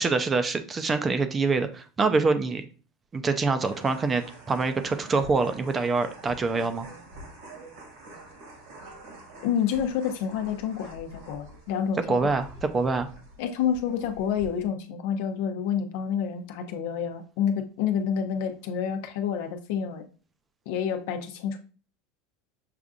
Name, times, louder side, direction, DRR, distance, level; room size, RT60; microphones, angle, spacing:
voice 1, 0.0-2.7 3.1-6.9 12.1-13.1, right 4 dB, 25° right, 9 dB, 0.5 m, -25 dB
sound 1, 3.6-14.7, right 1 dB, 75° right, 1.6 m, -46 dB
voice 2, 9.4-12.3 13.4-20.0 20.7-21.6, left 8 dB, 70° left, 6 dB, 0.7 m, -28 dB
6.5 x 2.5 x 2.4 m, 0.37 s
supercardioid pair, 105°, 0 cm